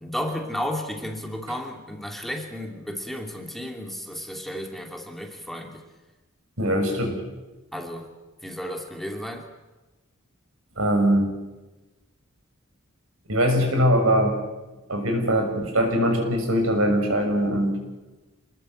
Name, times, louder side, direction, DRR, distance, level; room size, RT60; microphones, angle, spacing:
voice 1, 0.0-5.8 7.7-8.1 8.4-9.5, equal, ahead, 2 dB, 2.6 m, -33 dB
voice 2, 6.6-7.2 10.8-11.3 13.3-14.4 14.9-17.8, equal, 80° right, 4 dB, 6.7 m, -22 dB
27.5 x 20.5 x 7.8 m, 1.1 s
head